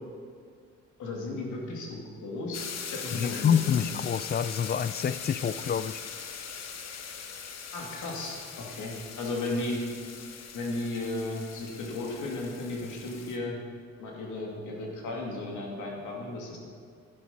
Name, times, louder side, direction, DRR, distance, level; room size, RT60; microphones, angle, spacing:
voice 1, 1.0-2.7 2.9-3.8 7.7-9.8 10.5-13.6 14.0-16.6, left 2 dB, 80° left, -1 dB, 2.7 m, -35 dB
sound 1, 2.5-13.4, left 6 dB, 60° left, 1.2 m, -41 dB
voice 2, 3.1-6.0, left 8 dB, 35° left, 15 dB, 0.4 m, -27 dB
11.0 x 10.5 x 5.3 m, 2.1 s
cardioid pair, 90°, 30 cm